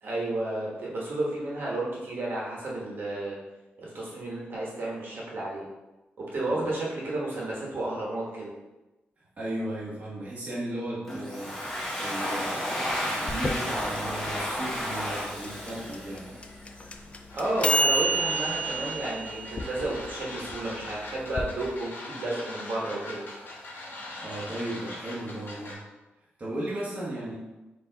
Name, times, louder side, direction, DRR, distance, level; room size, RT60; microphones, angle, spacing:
voice 1, 0.0-3.4 3.8-5.7 6.2-8.5 17.3-23.2, right 2 dB, 55° right, -4 dB, 1.2 m, -32 dB
voice 2, 9.4-11.5 12.0-16.3 24.2-25.8 26.4-27.3, right 1 dB, 35° right, -7 dB, 1.0 m, -35 dB
Domestic sounds home sounds, 11.1-16.7, equal, 5° left, 0.9 m, -32 dB
sound 1, 13.3-21.4, right 2 dB, 30° left, 0.3 m, -30 dB
sound 2, 17.3-25.7, left 2 dB, 50° left, 1.2 m, -41 dB
4.3 x 2.8 x 3.9 m, 1.1 s
wide cardioid pair, 155°, 4 cm